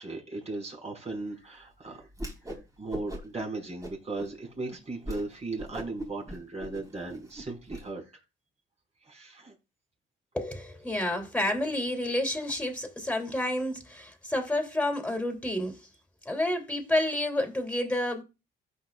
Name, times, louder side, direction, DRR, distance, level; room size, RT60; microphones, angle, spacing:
voice 1, 0.0-2.1 2.8-8.0 9.0-9.5, right 2 dB, 35° right, 5.3 m, -37 dB
Whoosh swoosh swish, 2.1-2.6 2.9-3.4 3.8-4.3 4.7-4.8 5.0-5.2 5.6-7.8, right 1 dB, 15° right, 3.2 m, -39 dB
voice 2, 10.3-15.8 16.2-18.2, left 1 dB, 5° left, 3.2 m, -29 dB
15.5 x 5.7 x 2.5 m
cardioid pair, 90°, 20 cm